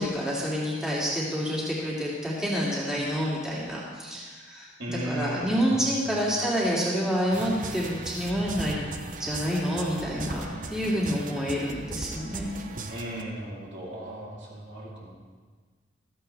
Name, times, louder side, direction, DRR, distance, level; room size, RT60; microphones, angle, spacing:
voice 1, 0.0-8.9 9.2-12.5, equal, 5° right, -7 dB, 2.4 m, -28 dB
voice 2, 4.8-5.8 6.0-6.5 12.9-15.1, right 1 dB, 65° right, -5 dB, 3.3 m, -36 dB
sound 1, 7.3-13.2, right 3 dB, 40° right, 0.8 m, -38 dB
15.5 x 14.0 x 3.4 m, 1.4 s
head